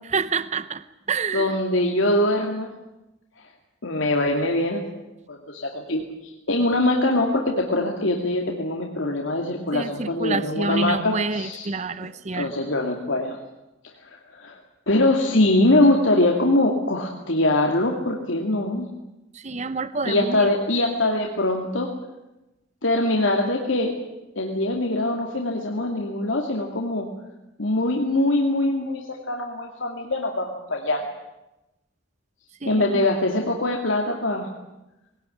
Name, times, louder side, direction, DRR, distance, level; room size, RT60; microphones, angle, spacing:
voice 1, 0.1-1.5 9.7-12.5 19.3-20.5 32.6-33.1, right 4 dB, 35° right, 14 dB, 0.8 m, -28 dB
voice 2, 1.3-2.7 3.8-4.8 5.3-11.7 12.0-12.1 12.3-13.4 14.1-14.6 14.9-18.9 20.0-21.9 22.8-23.9 24.4-27.1 27.6-29.0 29.3-31.0 32.7-34.5, left 1 dB, 75° left, 1 dB, 2.5 m, -23 dB
21.5 x 18.5 x 10.0 m, 0.97 s
head